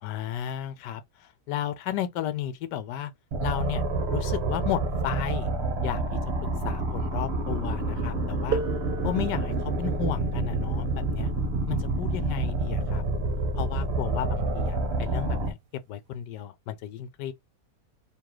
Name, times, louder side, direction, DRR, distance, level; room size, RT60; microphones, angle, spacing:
voice 1, 0.0-3.1 3.4-3.8 4.1-5.5 5.8-6.2 6.6-8.6 9.0-11.3 11.7-13.0 13.6-17.3, left 10 dB, 90° left, 1.3 m, -33 dB
sound 1, 3.3-15.5, right 2 dB, 45° right, 1.2 m, -28 dB
sound 2, 8.5-13.9 15.0-15.1 15.9-16.1, right 6 dB, 75° right, 1.1 m, -38 dB
4.8 x 3.0 x 3.7 m
omnidirectional pair, 1.8 m